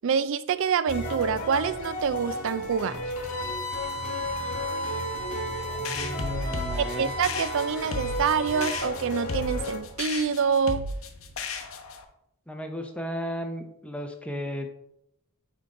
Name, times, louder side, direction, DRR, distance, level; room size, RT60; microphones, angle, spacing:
voice 1, 0.0-3.0 6.8-10.9, right 6 dB, 60° right, 0.4 m, -26 dB
sound 1, 0.9-9.8, left 1 dB, 90° left, 1.2 m, -34 dB
Bowed string instrument, 3.1-8.8, equal, 30° left, 1.2 m, -36 dB
voice 2, 5.8-7.1 12.5-14.7, equal, 5° left, 0.6 m, -35 dB
sound 2, 5.9-12.0, left 3 dB, 65° left, 0.7 m, -34 dB
5.5 x 3.8 x 4.8 m
head